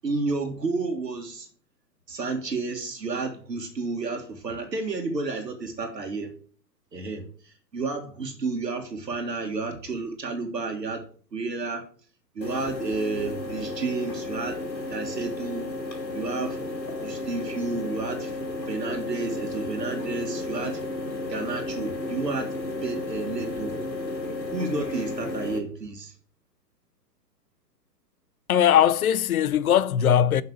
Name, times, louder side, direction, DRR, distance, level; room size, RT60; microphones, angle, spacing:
voice 1, 0.0-1.5 2.1-6.3 6.9-11.0 11.3-11.8 12.4-14.6 14.9-15.7 16.1-16.6 17.0-18.4 18.7-20.8 21.3-22.5 22.8-23.7 24.5-26.1, right 3 dB, 75° right, 1.9 m, -31 dB
sound 1, 12.4-25.6, left 2 dB, 90° left, 3.2 m, -33 dB
voice 2, 28.5-30.4, left 9 dB, 60° left, 0.7 m, -20 dB
7.3 x 5.8 x 6.7 m
figure-of-eight pair, 115°, 50 cm